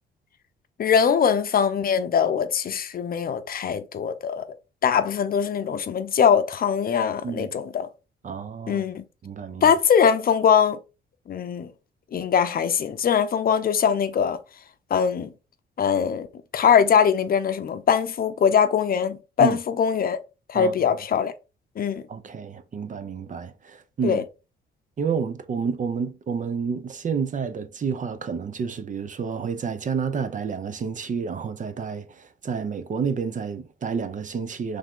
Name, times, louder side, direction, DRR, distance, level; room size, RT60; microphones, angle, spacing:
voice 1, 0.8-4.4 4.8-7.9 8.7-9.0 9.6-10.8 11.3-11.7 12.1-14.4 14.9-15.3 15.8-16.3 16.5-20.2 20.5-21.3 21.8-22.0 24.0-24.2, left 7 dB, 50° left, 0.6 m, -22 dB
voice 2, 8.2-8.8 9.2-9.7 19.4-19.6 20.5-20.7 22.1-24.2 25.0-34.8, right 6 dB, 40° right, 0.6 m, -29 dB
3.5 x 3.3 x 3.7 m
cardioid pair, 90°, 20 cm